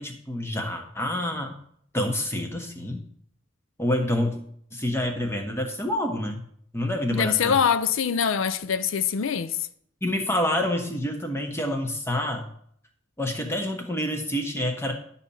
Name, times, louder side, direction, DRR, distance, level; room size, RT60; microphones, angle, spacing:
voice 1, 0.0-1.6 1.9-3.0 3.8-4.4 4.7-6.4 6.7-7.6 10.0-12.5 13.2-14.9, left 1 dB, 15° left, 1.2 m, -27 dB
voice 2, 7.1-9.7, left 7 dB, 85° left, 0.5 m, -24 dB
11.0 x 4.2 x 7.0 m
head